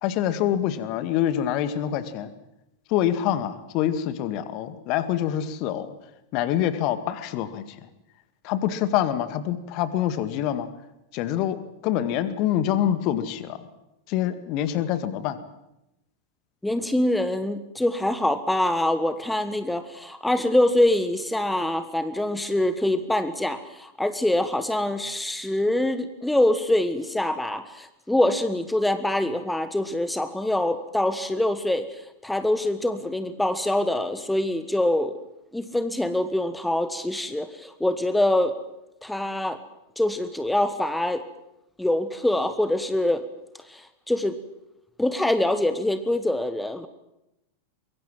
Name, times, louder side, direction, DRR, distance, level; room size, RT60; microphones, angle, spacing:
voice 1, 0.0-2.3 2.9-5.9 6.3-7.7 8.4-10.7 11.1-13.7 14.1-15.4, left 11 dB, 40° left, 12 dB, 1.9 m, -26 dB
voice 2, 16.6-35.1 35.5-38.5 39.0-39.6 40.0-41.2 41.8-43.2 43.7-44.4 45.0-46.9, left 1 dB, 5° left, 11 dB, 1.3 m, -24 dB
24.0 x 23.0 x 7.6 m, 0.89 s
figure-of-eight pair, 90°, 0 cm